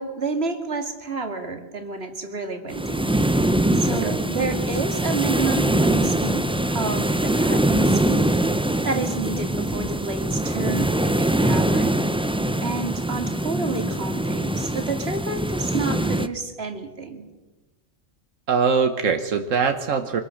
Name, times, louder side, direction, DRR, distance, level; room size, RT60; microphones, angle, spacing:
voice 1, 0.0-3.1 3.7-11.9 12.6-17.2, right 4 dB, 55° right, 5 dB, 2.5 m, -30 dB
sound 1, 2.7-16.3, right 1 dB, 5° right, 0.4 m, -23 dB
voice 2, 18.5-20.2, right 5 dB, 85° right, 6 dB, 1.6 m, -22 dB
25.5 x 19.5 x 6.5 m, 1.2 s
omnidirectional pair, 1.3 m